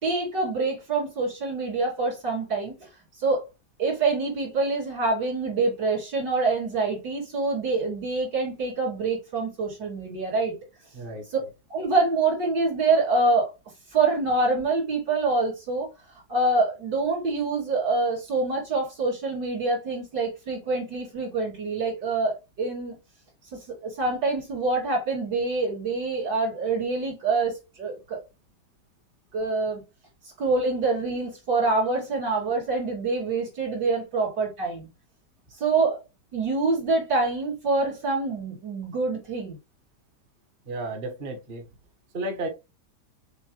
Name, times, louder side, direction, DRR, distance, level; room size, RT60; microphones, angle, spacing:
voice 1, 0.0-2.9 3.2-3.4 3.8-10.5 11.7-13.5 13.9-15.9 16.3-22.9 23.5-28.2 29.3-29.8 30.2-34.9 35.6-36.0 36.3-39.6, right 3 dB, 80° right, 3.5 m, -26 dB
voice 2, 10.9-11.2 40.7-41.6 42.1-42.5, right 2 dB, 35° right, 1.1 m, -32 dB
6.8 x 2.4 x 3.1 m
omnidirectional pair, 1.8 m